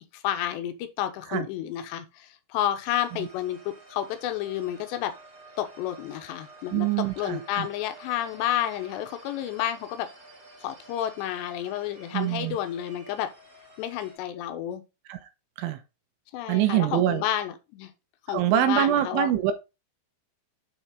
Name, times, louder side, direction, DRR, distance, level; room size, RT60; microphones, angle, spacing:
voice 1, 0.1-5.1 5.6-6.9 7.2-10.1 10.6-13.3 13.8-14.8 16.3-17.9 18.3-19.3, left 11 dB, 75° left, 2.9 m, -30 dB
sound 1, 2.8-14.2, right 2 dB, 40° right, 1.2 m, -50 dB
voice 2, 6.7-7.7 12.1-12.6 15.1-15.2 15.6-15.8 16.5-17.2 18.3-19.5, right 12 dB, 85° right, 3.3 m, -24 dB
9.2 x 4.3 x 3.8 m
omnidirectional pair, 5.6 m